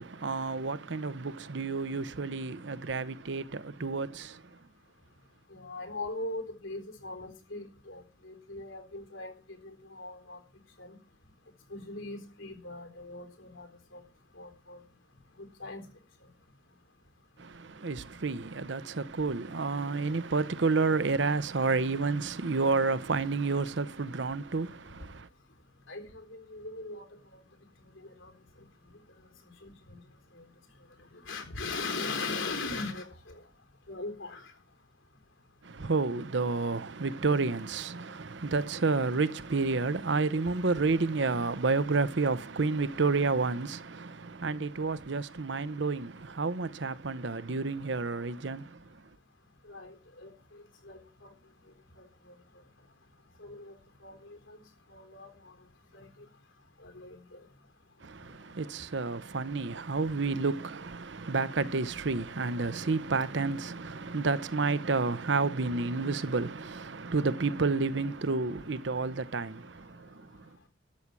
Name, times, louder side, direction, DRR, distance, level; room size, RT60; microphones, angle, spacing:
voice 1, 0.0-4.4 17.4-25.3 35.6-48.8 58.0-70.3, right 4 dB, 65° right, 0.7 m, -30 dB
voice 2, 5.5-9.3 9.6-10.4 10.8-10.9 11.7-13.7 13.9-14.0 14.4-14.8 15.6-15.8 25.9-27.1 28.0-28.3 29.6-29.7 31.3-33.4 33.9-34.5 49.7-51.3 53.4-53.7 54.0-54.6 54.9-55.5 55.9-56.1 56.8-57.4, left 3 dB, 85° left, 4.0 m, -40 dB
13.0 x 7.3 x 8.2 m
head